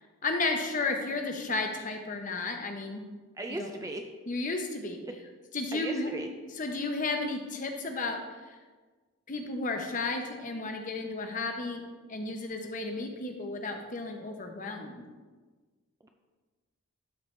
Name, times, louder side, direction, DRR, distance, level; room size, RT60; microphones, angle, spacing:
voice 1, 0.2-3.0 3.5-3.7 4.3-5.0 5.5-6.1 6.5-8.2 9.3-11.8 12.1-15.1, left 3 dB, 35° left, 4 dB, 0.8 m, -33 dB
voice 2, 3.4-4.0 5.7-6.3, right 2 dB, 15° right, 4 dB, 0.3 m, -37 dB
12.5 x 4.6 x 3.3 m, 1.3 s
head